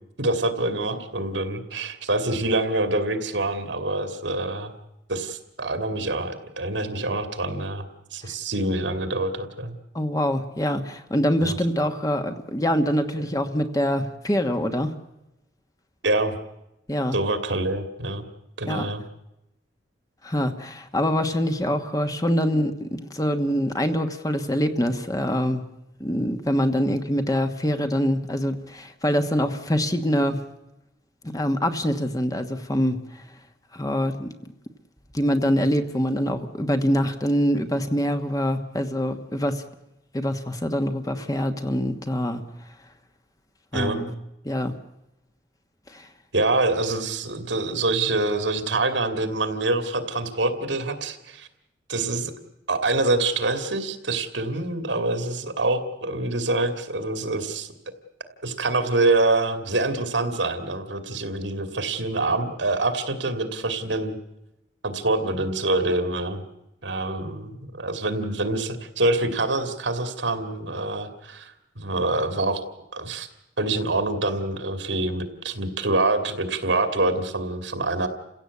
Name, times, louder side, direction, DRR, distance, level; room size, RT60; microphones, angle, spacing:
voice 1, 0.2-4.8 5.1-9.7 11.4-11.6 16.0-16.4 17.1-18.2 18.6-19.0 43.7-44.0 46.3-51.5 51.9-52.3 52.7-57.7 58.4-64.2 64.8-66.4 66.8-72.6 72.9-73.3 73.6-78.1, right 2 dB, 80° right, 9 dB, 2.4 m, -25 dB
voice 2, 9.9-14.9 16.9-17.2 18.7-18.9 20.2-25.6 26.0-30.4 31.3-33.2 33.7-34.3 35.1-39.6 40.1-42.4 43.7-44.1 44.4-44.7 45.9-46.1, equal, 20° left, 8 dB, 1.2 m, -24 dB
29.0 x 16.5 x 8.4 m, 0.91 s
head